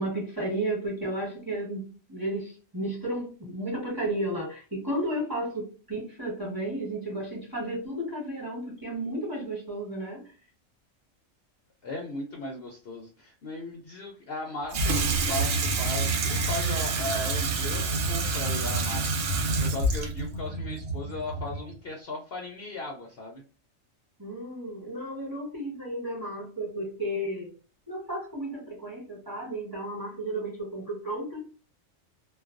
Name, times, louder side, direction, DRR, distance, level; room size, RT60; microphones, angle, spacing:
voice 1, 0.0-10.2 24.2-27.5 27.9-31.4, right 1 dB, 15° right, -4 dB, 1.1 m, -33 dB
voice 2, 11.8-23.4, left 2 dB, 60° left, 0 dB, 0.7 m, -37 dB
Water tap faucet / Sink (filling or washing), 14.7-21.7, right 3 dB, 65° right, 0.8 m, -27 dB
2.3 x 2.2 x 2.4 m, 0.38 s
omnidirectional pair, 1.3 m